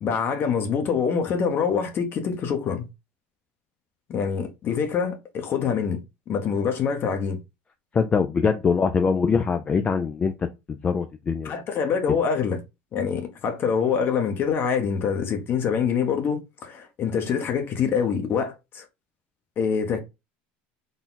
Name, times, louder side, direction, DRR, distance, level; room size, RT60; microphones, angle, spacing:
voice 1, 0.0-2.9 4.1-6.0 6.3-7.4 11.4-12.6 12.9-18.8 19.6-20.0, left 6 dB, 40° left, 1.0 m, -25 dB
voice 2, 7.9-10.3 10.7-11.6 12.1-12.2, left 5 dB, 25° left, 0.4 m, -23 dB
3.9 x 2.3 x 4.0 m
supercardioid pair, 110°, 5 cm